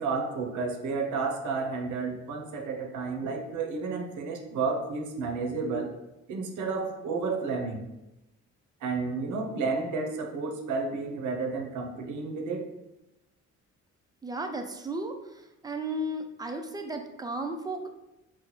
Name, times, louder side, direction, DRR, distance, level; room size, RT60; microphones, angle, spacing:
voice 1, 0.0-5.9 6.3-7.8 8.8-12.6, right 4 dB, 75° right, 3 dB, 0.7 m, -31 dB
voice 2, 14.2-15.1 15.6-17.9, right 1 dB, 15° right, 5 dB, 0.3 m, -34 dB
4.0 x 2.0 x 3.0 m, 0.94 s
cardioid pair, 90°, 30 cm